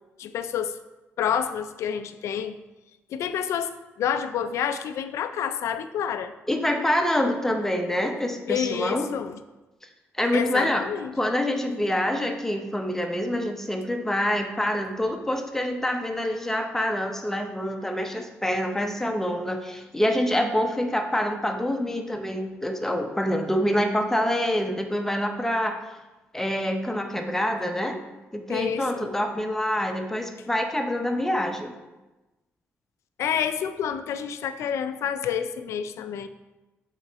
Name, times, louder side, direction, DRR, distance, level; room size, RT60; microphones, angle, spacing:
voice 1, 0.2-0.8 1.2-2.6 3.1-3.7 4.0-6.3 8.5-9.4 10.3-11.2 28.5-29.1 33.2-36.3, left 8 dB, 85° left, 11 dB, 0.4 m, -28 dB
voice 2, 6.5-9.1 10.2-10.9 11.1-25.8 26.3-28.0 28.3-31.7, left 1 dB, 10° left, 4 dB, 0.7 m, -26 dB
8.1 x 3.8 x 4.2 m, 1.1 s
cardioid pair, 110°, 5 cm